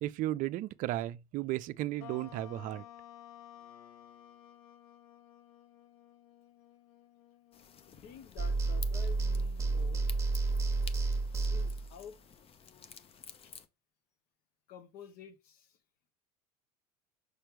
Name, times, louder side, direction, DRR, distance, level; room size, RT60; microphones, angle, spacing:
voice 1, 0.0-2.8, right 15 dB, 45° right, 0.5 m, -34 dB
sound 1, 2.0-8.7, left 11 dB, 70° left, 0.8 m, -55 dB
sound 2, 7.5-13.7, left 7 dB, 30° left, 0.7 m, -52 dB
voice 2, 8.0-10.1 11.5-12.2 13.4-13.5 14.7-15.8, left 7 dB, 55° left, 1.1 m, -50 dB
sound 3, 8.4-11.9, right 3 dB, 15° right, 1.3 m, -31 dB
6.7 x 4.4 x 3.3 m
hypercardioid pair, 85°, 19 cm